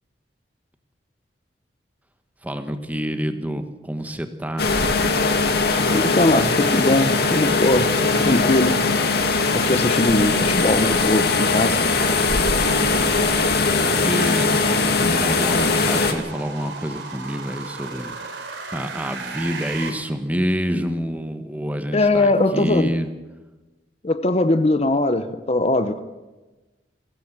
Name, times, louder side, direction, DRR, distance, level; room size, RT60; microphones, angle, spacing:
voice 1, 2.4-4.7 12.6-13.3 13.7-14.5 15.0-18.5 18.7-23.1, equal, 10° right, 8 dB, 1.4 m, -28 dB
sound 1, 4.6-16.1, left 3 dB, 60° left, 2.3 m, -20 dB
voice 2, 5.9-8.8 9.5-11.8 21.9-22.9 24.0-26.0, left 2 dB, 35° left, 11 dB, 0.8 m, -20 dB
sound 2, 11.2-19.9, right 4 dB, 90° right, 3.9 m, -38 dB
22.0 x 16.0 x 7.5 m, 1.2 s
head